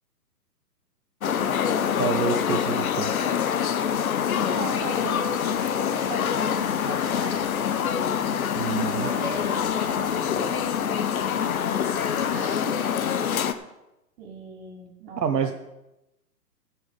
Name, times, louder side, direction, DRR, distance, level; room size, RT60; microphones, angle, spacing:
sound 1, 1.2-13.5, left 8 dB, 60° left, 1.0 m, -25 dB
voice 1, 2.0-3.3 8.5-9.1 15.2-15.5, right 6 dB, 75° right, 5 dB, 1.1 m, -27 dB
voice 2, 4.5-5.2 5.8-7.5 8.8-11.8 12.3-13.0 14.2-15.5, right 4 dB, 40° right, 0 dB, 4.0 m, -39 dB
16.0 x 6.2 x 5.3 m, 0.92 s
hypercardioid pair, 145°, 49 cm